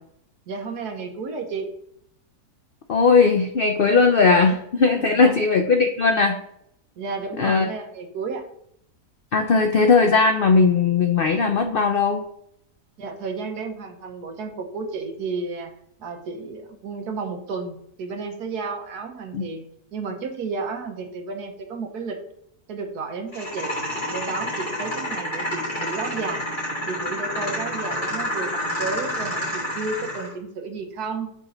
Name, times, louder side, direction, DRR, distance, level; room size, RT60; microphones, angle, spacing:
voice 1, 0.5-1.7 4.4-4.6 5.0-5.4 7.0-8.4 13.0-15.7 16.0-19.6 19.9-22.2 22.7-23.8 24.1-26.4 26.9-31.3, right 4 dB, 75° right, 5 dB, 1.4 m, -32 dB
voice 2, 2.9-6.4 7.4-7.7 9.3-12.2 19.3-19.4, left 4 dB, 80° left, 5 dB, 0.5 m, -18 dB
sound 1, 23.3-30.3, equal, 30° left, 2.2 m, -29 dB
5.1 x 3.8 x 5.6 m, 0.71 s
omnidirectional pair, 1.7 m